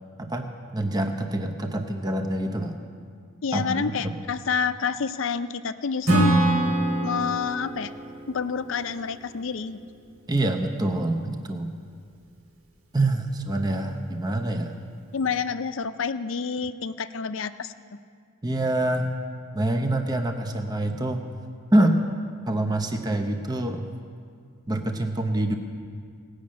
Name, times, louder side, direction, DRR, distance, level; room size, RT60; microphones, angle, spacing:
voice 1, 0.2-2.8 3.5-4.1 10.3-11.7 12.9-14.8 18.4-19.1 19.5-21.3 21.7-22.0 22.5-23.8 24.7-25.6, right 1 dB, 20° right, 5 dB, 0.7 m, -25 dB
voice 2, 3.4-6.3 7.0-7.9 8.3-9.8 15.1-17.7, left 6 dB, 65° left, 12 dB, 0.5 m, -28 dB
Acoustic guitar / Strum, 6.0-9.6, right 1 dB, 85° right, 2.4 m, -25 dB
18.0 x 6.4 x 8.5 m, 2.2 s
head